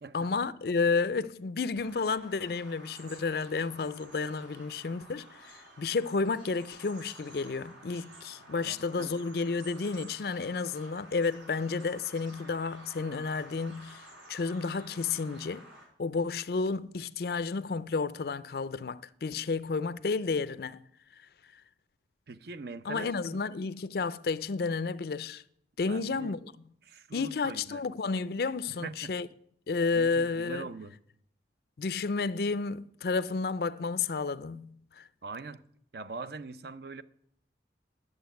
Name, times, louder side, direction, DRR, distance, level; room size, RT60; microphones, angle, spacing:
voice 1, 0.1-15.7 16.0-20.8 22.9-25.4 25.8-26.5 27.1-29.3 29.7-30.7 31.8-35.1, left 4 dB, 55° left, 0.4 m, -31 dB
Bird vocalization bird call bird song, 1.8-15.8, right 1 dB, 85° right, 4.5 m, -52 dB
voice 2, 8.6-9.1 22.3-23.4 25.8-26.3 26.8-27.8 28.7-29.1 29.9-31.0 35.2-35.6 35.9-37.0, right 4 dB, 60° right, 0.6 m, -42 dB
10.5 x 7.4 x 9.1 m
head